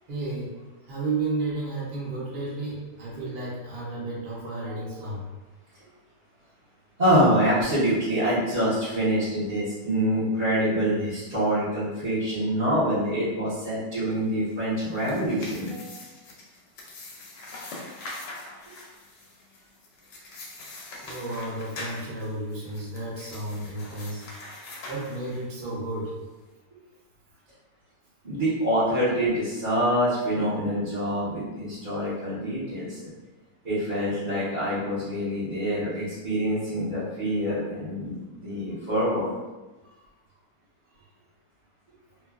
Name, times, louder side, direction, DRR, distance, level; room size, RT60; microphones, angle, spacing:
voice 1, 0.1-0.5 0.9-5.2 15.7-16.0 21.0-24.2 24.9-26.1 39.8-40.0, right 2 dB, 70° right, -7 dB, 0.5 m, -32 dB
voice 2, 7.0-15.7 28.2-33.1 33.6-39.3, equal, 30° right, -15 dB, 0.8 m, -25 dB
sound 1, 14.8-25.7, left 2 dB, 80° left, 1.3 m, -43 dB
3.0 x 2.4 x 2.4 m, 1.1 s
omnidirectional pair, 1.9 m